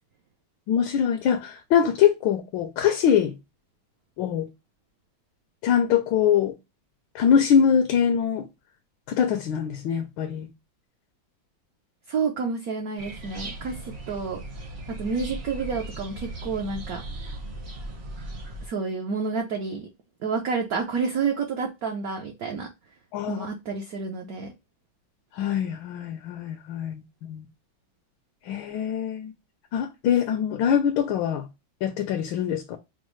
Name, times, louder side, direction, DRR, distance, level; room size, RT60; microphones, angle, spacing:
voice 1, 0.7-3.3 4.2-4.5 5.6-6.5 7.1-8.5 9.1-10.5 23.1-23.5 25.4-27.4 28.5-29.3 29.7-31.5 31.8-32.8, left 8 dB, 75° left, 1.3 m, -23 dB
voice 2, 12.1-14.4 14.9-17.0 18.6-19.9 20.2-22.7 23.3-24.5, right 5 dB, 65° right, 0.9 m, -29 dB
sound 1, 13.0-18.7, right 2 dB, 40° right, 0.7 m, -37 dB
5.1 x 2.0 x 3.1 m
omnidirectional pair, 2.2 m